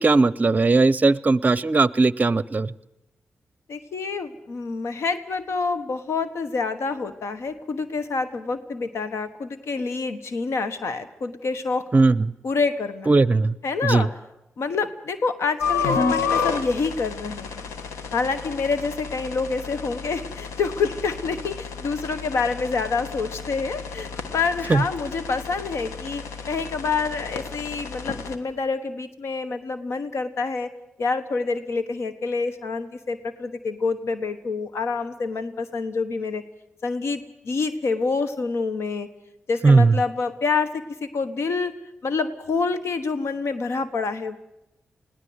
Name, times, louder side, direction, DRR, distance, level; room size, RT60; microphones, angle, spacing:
voice 1, 0.0-2.7 11.9-12.3 13.1-13.6 13.8-14.1 24.7-24.8 39.6-40.0, right 3 dB, 35° right, 20 dB, 0.6 m, -18 dB
voice 2, 3.7-11.8 12.4-13.1 13.6-14.1 14.6-17.7 18.1-30.7 31.0-36.4 36.8-39.1 39.5-40.7 41.0-41.7 42.0-44.4, left 4 dB, 70° left, 11 dB, 1.2 m, -27 dB
sound 1, 15.6-28.4, left 5 dB, 90° left, 1.3 m, -31 dB
21.0 x 16.5 x 8.0 m, 0.90 s
supercardioid pair, 45°, 5 cm